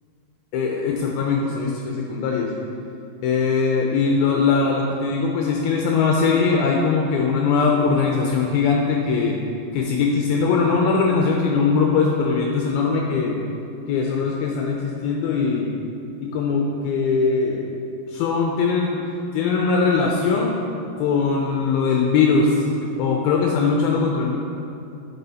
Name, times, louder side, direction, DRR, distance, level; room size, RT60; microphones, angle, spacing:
voice 1, 0.5-2.5 3.2-9.4 9.7-13.4 13.9-15.7 16.2-17.7 18.1-19.0 19.3-20.6 21.0-24.4, left 4 dB, 80° left, 0 dB, 2.3 m, -21 dB
10.0 x 6.2 x 4.1 m, 2.7 s
omnidirectional pair, 4.8 m